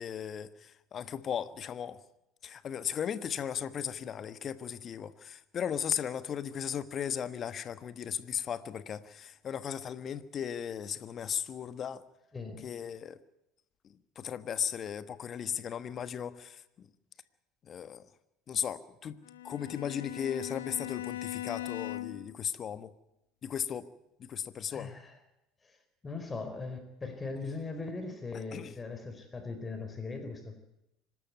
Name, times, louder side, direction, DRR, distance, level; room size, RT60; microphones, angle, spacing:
voice 1, 0.0-2.0 2.4-12.0 12.6-13.2 13.8-16.9 17.6-18.1 18.5-22.9 23.4-23.9 24.2-24.9 28.3-28.8, left 8 dB, 40° left, 1.3 m, -36 dB
voice 2, 12.3-12.7 24.7-25.1 25.6-25.8 26.0-30.6, left 3 dB, 25° left, 4.4 m, -39 dB
Bowed string instrument, 19.2-22.4, left 14 dB, 80° left, 1.0 m, -39 dB
25.5 x 12.5 x 9.6 m
hypercardioid pair, 70°, 0 cm